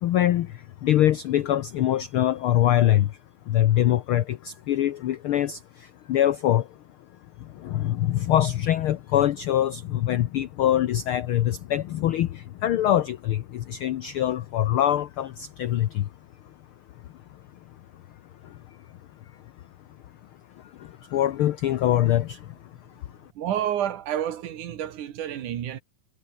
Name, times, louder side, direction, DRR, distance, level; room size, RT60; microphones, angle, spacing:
voice 1, 0.0-3.2 3.5-6.8 7.4-16.1 16.4-16.5 18.4-18.8 20.6-23.2, left 12 dB, 85° left, 1.2 m, -24 dB
voice 2, 23.4-25.8, right 10 dB, 90° right, 3.3 m, -29 dB
omnidirectional pair, 3.4 m